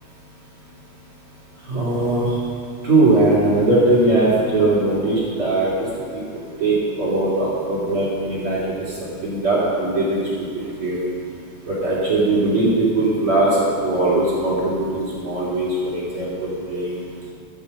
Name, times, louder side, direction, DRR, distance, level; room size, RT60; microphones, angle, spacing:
voice 1, 1.7-2.3 2.8-5.9 6.6-8.6 9.2-10.2 10.5-11.0 11.7-16.9, right 2 dB, 35° right, -8 dB, 2.9 m, -20 dB
12.0 x 10.5 x 5.5 m, 2.3 s
omnidirectional pair, 5.8 m